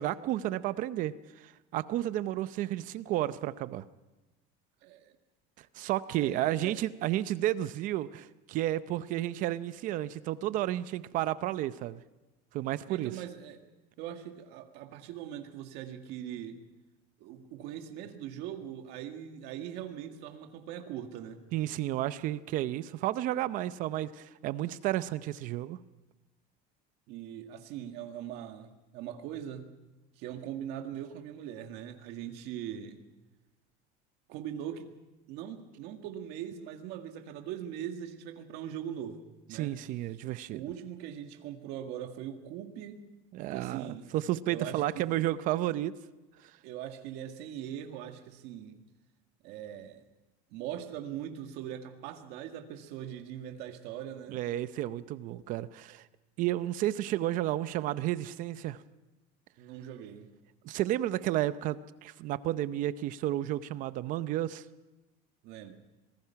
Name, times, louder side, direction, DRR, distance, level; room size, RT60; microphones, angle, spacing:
voice 1, 0.0-3.8 5.6-12.0 12.5-13.1 21.5-25.8 39.5-40.6 43.3-45.9 54.3-56.0 56.4-58.8 60.6-64.6, right 14 dB, 45° right, 15 dB, 0.6 m, -32 dB
voice 2, 4.8-5.1 6.2-6.8 12.9-13.6 14.0-16.6 17.2-21.4 27.1-29.7 30.2-33.0 34.3-34.9 35.3-39.7 40.5-43.0 43.5-44.1 44.5-45.2 46.6-48.8 49.4-50.0 50.5-54.4 59.6-60.3 65.4-65.7, right 10 dB, 60° right, 5 dB, 2.0 m, -41 dB
25.5 x 19.0 x 5.8 m, 1.1 s
cardioid pair, 175°, 20 cm